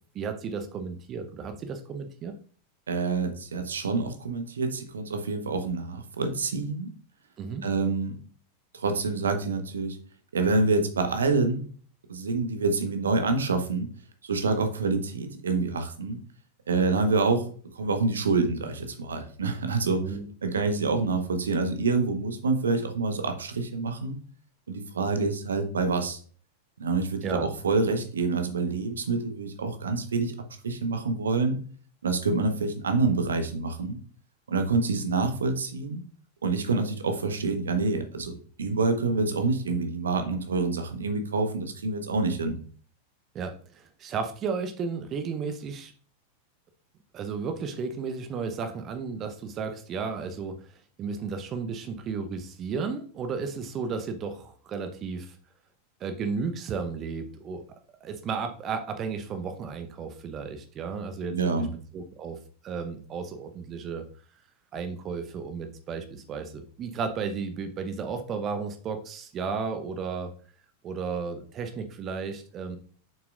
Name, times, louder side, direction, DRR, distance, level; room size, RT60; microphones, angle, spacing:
voice 1, 0.1-2.3 7.4-7.7 20.0-20.3 27.2-27.5 43.3-45.9 47.1-50.6 51.0-55.4 56.0-57.6 58.0-61.7 61.9-62.4 62.6-64.0 64.7-70.3 70.8-72.8, right 5 dB, 30° right, 7 dB, 0.8 m, -33 dB
voice 2, 2.9-6.9 7.6-8.2 8.7-10.0 10.3-11.7 12.1-13.9 14.2-16.2 16.7-17.4 17.7-24.2 24.7-26.2 26.8-30.3 30.6-31.6 32.0-34.0 34.5-36.0 36.4-42.5 61.3-61.7, right 3 dB, 70° right, 7 dB, 1.1 m, -27 dB
7.4 x 5.9 x 2.5 m, 0.44 s
figure-of-eight pair, 90°, 0 cm